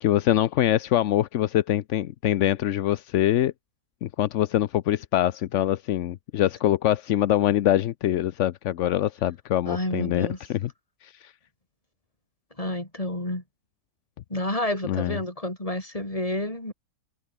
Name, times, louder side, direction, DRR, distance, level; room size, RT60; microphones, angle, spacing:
voice 1, 0.0-3.5 4.0-10.7 11.0-11.3 14.9-15.2, left 12 dB, 65° left, 0.7 m, -24 dB
voice 2, 9.7-10.4 12.6-13.4 14.3-16.7, left 1 dB, 20° left, 4.7 m, -29 dB
omnidirectional pair, 1.8 m